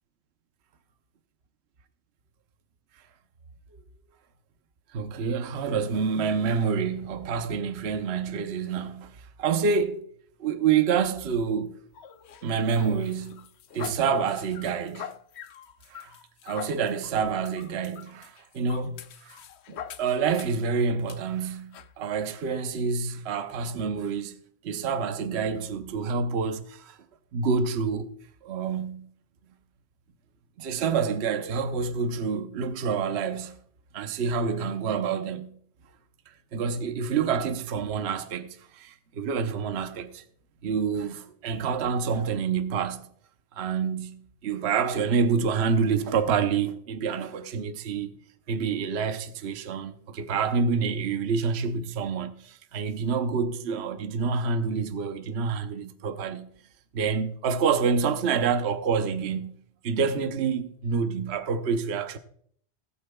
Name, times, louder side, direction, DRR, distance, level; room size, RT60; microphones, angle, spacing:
voice 1, 4.9-10.1 10.4-11.8 12.4-13.4 13.7-15.1 15.9-16.2 16.4-19.4 20.0-24.4 24.6-27.0 27.3-28.1 28.4-29.1 30.6-33.6 33.9-35.6 36.3-40.2 40.6-43.1 43.5-48.1 48.5-56.5 56.9-59.5 59.8-62.2, right 5 dB, 55° right, 1.0 m, -27 dB
sound 1, 11.9-20.7 21.1-21.2 21.7-21.9, left 8 dB, 60° left, 0.8 m, -44 dB
18.5 x 8.4 x 2.3 m
omnidirectional pair, 1.4 m